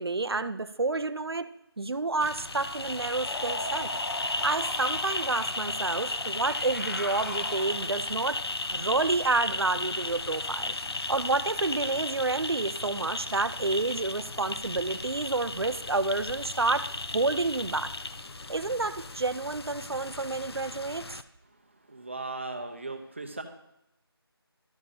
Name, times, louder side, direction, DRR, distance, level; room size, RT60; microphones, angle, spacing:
voice 1, 0.0-1.5 1.8-3.9 4.4-8.4 8.7-10.8 11.1-17.9 18.5-21.2, right 3 dB, 75° right, 14 dB, 0.6 m, -29 dB
sound 1, 2.2-21.2, left 3 dB, 75° left, 0.7 m, -35 dB
sound 2, 3.2-5.7 6.4-8.0, left 1 dB, 45° left, 1.4 m, -39 dB
voice 2, 21.9-23.4, right 3 dB, 30° right, 5 dB, 0.8 m, -37 dB
13.0 x 6.7 x 2.8 m, 0.85 s
figure-of-eight pair, 175°, 13 cm